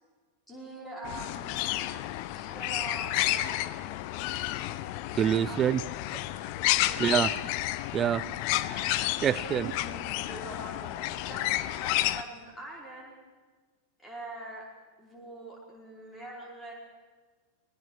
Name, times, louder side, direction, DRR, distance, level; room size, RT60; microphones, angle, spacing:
voice 1, 0.5-1.5 1.8-1.9 2.3-3.8 5.5-5.9 6.2-6.4 6.8-7.4 9.4-13.1 14.0-14.7 15.0-16.7, right 1 dB, 10° left, -2 dB, 5.0 m, -44 dB
sound 1, 1.0-12.2, left 15 dB, 45° left, 0.8 m, -31 dB
voice 2, 5.1-5.8 7.0-7.3 7.9-8.3 8.7-9.7, right 9 dB, 25° right, 19 dB, 0.5 m, -27 dB
24.5 x 19.5 x 6.4 m, 1.4 s
figure-of-eight pair, 90°, 0 cm